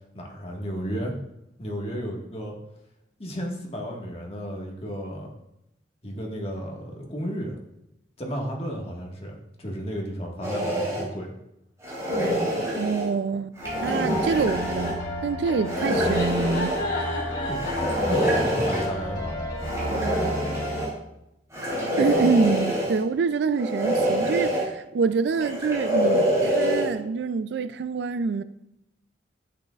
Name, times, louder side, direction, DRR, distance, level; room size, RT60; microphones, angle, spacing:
voice 1, 0.1-1.1 1.6-2.5 3.2-5.3 6.0-7.6 8.2-11.3 17.0-17.1 17.4-19.5, equal, 35° left, 1.6 m, -33 dB
sound 1, 10.4-11.1 11.8-13.1 13.6-14.9 15.6-16.8 17.5-18.9 19.6-20.9 21.5-23.0 23.5-24.6 25.3-26.9, equal, 15° right, 3.2 m, -25 dB
voice 2, 12.7-16.8 22.0-28.4, right 5 dB, 65° right, 0.3 m, -26 dB
sound 2, 13.6-20.9, left 1 dB, 80° left, 2.5 m, -31 dB
10.5 x 8.5 x 2.4 m
head